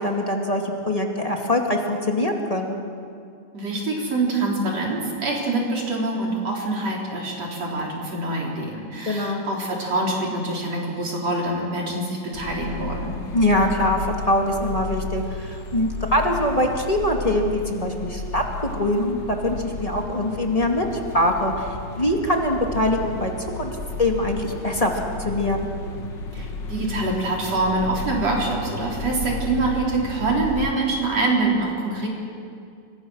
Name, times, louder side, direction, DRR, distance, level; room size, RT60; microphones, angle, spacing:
voice 1, 0.0-2.8 9.0-9.4 13.3-20.8 21.1-25.7, left 1 dB, 15° left, 1 dB, 1.5 m, -23 dB
voice 2, 3.5-13.1 26.3-32.1, right 2 dB, 45° right, -2 dB, 4.9 m, -25 dB
sound 1, 12.3-30.7, left 3 dB, 45° left, 1.6 m, -33 dB
29.0 x 24.5 x 6.4 m, 2.4 s
omnidirectional pair, 4.1 m